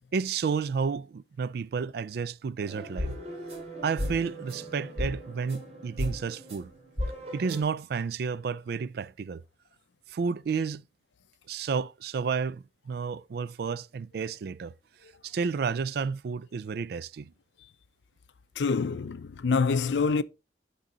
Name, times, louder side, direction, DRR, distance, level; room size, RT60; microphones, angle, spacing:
voice 1, 0.1-3.1 3.8-6.7 7.3-9.4 10.1-10.8 11.5-14.7 15.2-17.3, right 5 dB, 60° right, 0.3 m, -31 dB
sound 1, 2.6-7.6, equal, 35° right, 2.7 m, -36 dB
voice 2, 18.6-20.2, left 5 dB, 85° left, 0.5 m, -26 dB
9.9 x 3.8 x 3.9 m
head